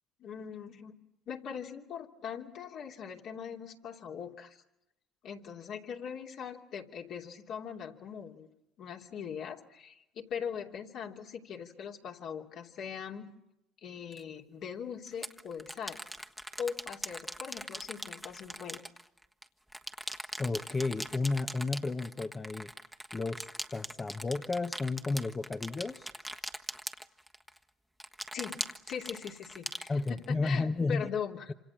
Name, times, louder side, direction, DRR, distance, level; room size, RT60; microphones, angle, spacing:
voice 1, 0.2-0.9 1.3-4.6 5.2-8.5 8.8-13.3 13.8-16.0 16.6-18.8 28.3-28.6 28.9-31.5, left 7 dB, 60° left, 1 dB, 3.0 m, -41 dB
sound 1, 14.1-14.2 15.1-19.5 19.7-27.6 28.0-30.5, equal, ahead, 1.4 m, -41 dB
voice 2, 20.4-22.7 23.1-26.1 29.9-31.1, left 3 dB, 25° left, 7 dB, 1.1 m, -32 dB
27.0 x 26.5 x 7.4 m, 0.86 s
hypercardioid pair, 70°, 0 cm